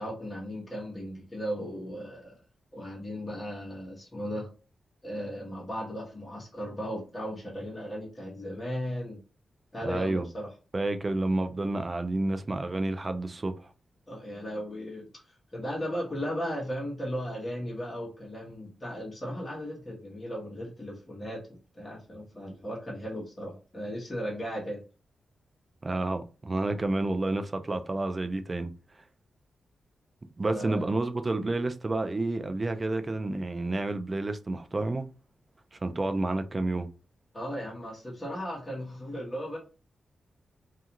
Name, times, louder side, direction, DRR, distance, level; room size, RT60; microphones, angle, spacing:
voice 1, 0.0-2.4 2.7-4.5 5.0-9.2 9.7-10.5 14.1-21.4 21.7-24.8 30.4-30.9 37.3-39.6, equal, 15° left, 0.9 m, -36 dB
voice 2, 9.8-10.3 10.7-13.7 25.8-28.7 30.4-35.1 35.7-36.9, right 2 dB, 25° right, 0.3 m, -30 dB
2.4 x 2.3 x 2.8 m
wide cardioid pair, 140°, 0 cm